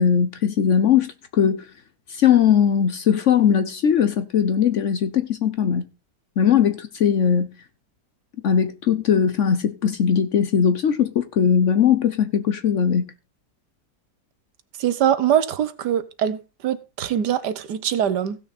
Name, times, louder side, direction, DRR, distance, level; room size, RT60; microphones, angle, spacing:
voice 1, 0.0-1.6 2.1-5.9 6.4-7.5 8.4-13.1, left 8 dB, 60° left, 0.9 m, -19 dB
voice 2, 14.8-18.4, right 9 dB, 80° right, 1.5 m, -23 dB
16.0 x 6.3 x 4.1 m
omnidirectional pair, 1.8 m